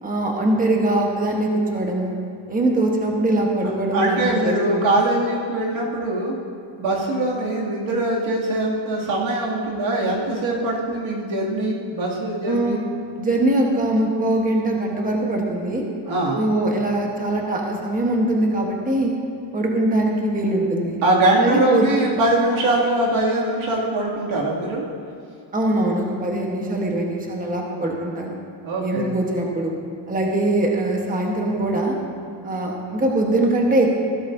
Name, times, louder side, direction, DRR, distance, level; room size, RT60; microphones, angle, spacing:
voice 1, 0.0-2.1 2.5-4.8 12.5-12.8 13.2-15.8 16.4-19.1 19.5-21.0 21.3-21.9 25.5-28.4 28.8-29.8 30.1-32.0 32.4-33.9, right 1 dB, 20° right, -1 dB, 1.2 m, -22 dB
voice 2, 3.6-6.4 6.8-12.8 16.1-16.4 21.0-24.9 28.6-29.1, right 2 dB, 90° right, -4 dB, 2.6 m, -22 dB
15.5 x 13.0 x 2.7 m, 2.5 s
wide cardioid pair, 165°, 46 cm